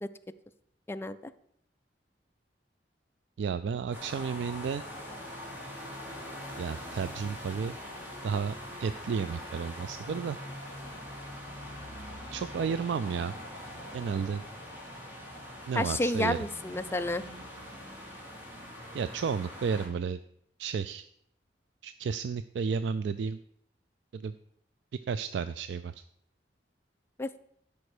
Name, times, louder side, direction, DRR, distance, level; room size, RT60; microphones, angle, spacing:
voice 1, 0.9-1.3 15.7-17.2 27.2-27.4, left 1 dB, 15° left, 10 dB, 0.4 m, -30 dB
voice 2, 3.4-4.8 6.6-7.8 8.2-10.4 12.3-13.4 13.9-14.4 15.7-16.4 18.9-20.2 20.6-21.0 21.8-23.4 24.1-24.3 25.1-26.0, right 6 dB, 75° right, 13 dB, 0.3 m, -32 dB
sound 1, 3.9-19.9, left 1 dB, 10° right, 2.3 m, -43 dB
12.5 x 5.3 x 4.9 m, 0.69 s
head